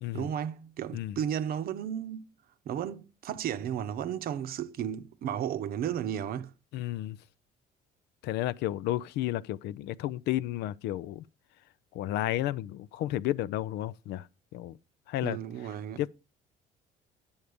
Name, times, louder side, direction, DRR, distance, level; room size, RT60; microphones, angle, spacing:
voice 1, 0.1-2.3 2.7-6.5 15.2-16.0, right 9 dB, 60° right, 0.7 m, -34 dB
voice 2, 6.7-7.2 8.2-11.2 11.9-14.3 14.5-14.8 15.1-15.4 16.0-16.1, left 14 dB, 80° left, 0.5 m, -32 dB
9.4 x 7.2 x 5.0 m
cardioid pair, 110°, 17 cm